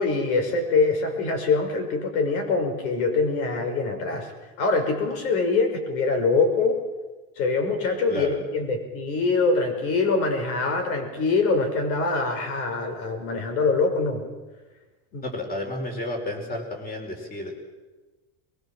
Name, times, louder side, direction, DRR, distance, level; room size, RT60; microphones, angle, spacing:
voice 1, 0.0-4.3 4.6-6.8 7.4-14.2 15.1-15.3, left 3 dB, 90° left, 5 dB, 6.0 m, -24 dB
voice 2, 15.2-17.5, left 2 dB, 20° left, 4 dB, 4.7 m, -31 dB
22.5 x 22.0 x 7.5 m, 1.2 s
cardioid pair, 165°, 42 cm